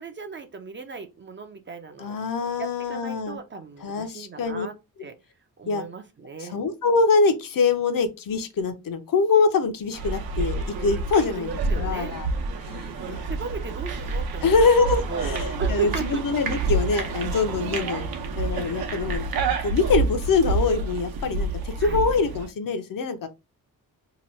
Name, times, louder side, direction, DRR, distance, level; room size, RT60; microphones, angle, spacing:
voice 1, 0.0-2.2 2.6-5.2 5.6-6.6 11.4-12.2 12.8-14.8 15.1-16.2 17.7-17.9 21.8-22.1, right 4 dB, 30° right, 0.5 m, -36 dB
voice 2, 2.0-3.4 3.8-4.7 5.7-5.8 6.4-11.5 11.8-12.3 12.7-13.2 14.4-18.0 18.4-19.3 19.6-23.3, left 4 dB, 65° left, 0.7 m, -24 dB
sound 1, 9.9-22.5, right 3 dB, 75° right, 0.8 m, -28 dB
2.9 x 2.3 x 4.2 m
wide cardioid pair, 135°, 37 cm